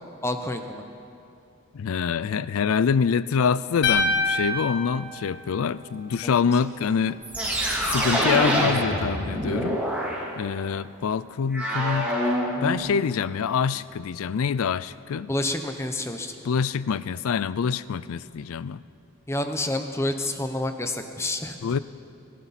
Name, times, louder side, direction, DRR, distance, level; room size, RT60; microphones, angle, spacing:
voice 1, 0.2-0.8 6.2-6.4 15.3-16.4 19.3-21.6, left 1 dB, 10° left, 7 dB, 0.7 m, -28 dB
voice 2, 1.7-7.2 7.9-9.8 10.4-12.1 12.6-15.3 16.4-18.8 21.6-21.8, left 6 dB, 80° left, 17 dB, 0.4 m, -25 dB
sound 1, 3.8-6.1, left 3 dB, 55° left, 1.3 m, -26 dB
sound 2, 6.6-6.7 7.2-10.2 11.5-12.8, equal, 5° right, 2.5 m, -25 dB
23.0 x 14.0 x 4.2 m, 2.7 s
head